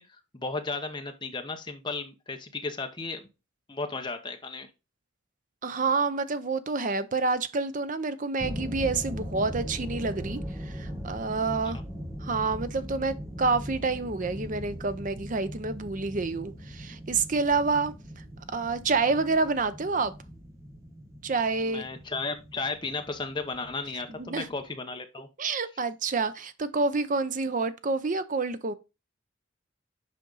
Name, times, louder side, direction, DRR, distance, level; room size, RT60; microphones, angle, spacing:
voice 1, 0.0-3.3 3.7-4.7 11.7-11.8 21.6-25.3, left 3 dB, 20° left, 1.0 m, -35 dB
voice 2, 5.6-11.8 12.2-17.9 18.5-20.1 21.2-21.9 24.1-24.5 25.4-28.7, right 4 dB, 40° right, 0.6 m, -28 dB
sound 1, 8.4-24.6, equal, 15° right, 1.3 m, -40 dB
7.5 x 5.2 x 4.0 m
head